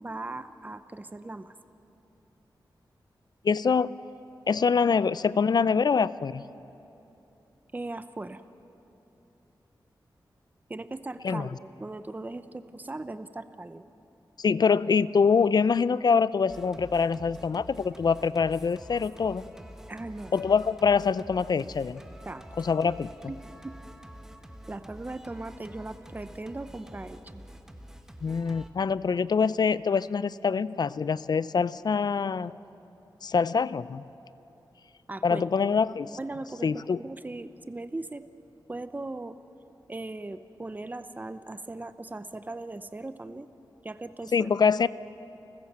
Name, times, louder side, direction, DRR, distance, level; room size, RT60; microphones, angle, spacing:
voice 1, 0.0-1.5 7.7-8.4 10.7-13.9 19.9-20.3 22.3-22.4 23.3-23.4 23.6-23.7 24.7-27.4 35.1-35.7 36.2-38.2 38.7-39.4 39.9-43.5 43.8-44.5, right 2 dB, 20° right, 11 dB, 0.8 m, -38 dB
voice 2, 3.4-3.9 4.5-6.4 11.2-11.5 14.4-19.4 20.3-22.0 22.6-23.1 28.2-32.5 33.2-34.0 35.2-36.1 36.6-37.0 44.3-44.9, left 5 dB, 60° left, 17 dB, 0.5 m, -24 dB
Singing, 16.5-28.7, equal, 5° right, 1.2 m, -47 dB
30.0 x 14.5 x 7.5 m, 2.9 s
wide cardioid pair, 80°, 8 cm